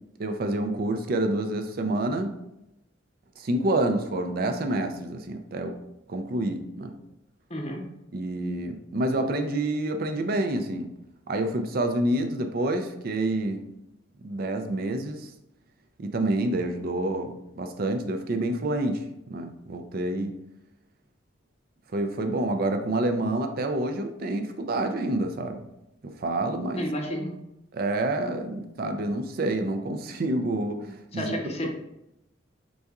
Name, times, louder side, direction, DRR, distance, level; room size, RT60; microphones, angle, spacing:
voice 1, 0.2-2.3 3.4-5.8 6.1-6.9 8.1-10.9 11.3-13.6 14.2-15.3 16.0-19.0 19.3-20.3 21.9-25.6 26.0-26.9 27.7-31.3, right 1 dB, 50° right, 6 dB, 0.5 m, -28 dB
voice 2, 7.5-7.8 26.8-27.4 31.1-31.7, equal, 35° left, 3 dB, 0.7 m, -31 dB
4.6 x 4.0 x 2.3 m, 0.87 s
head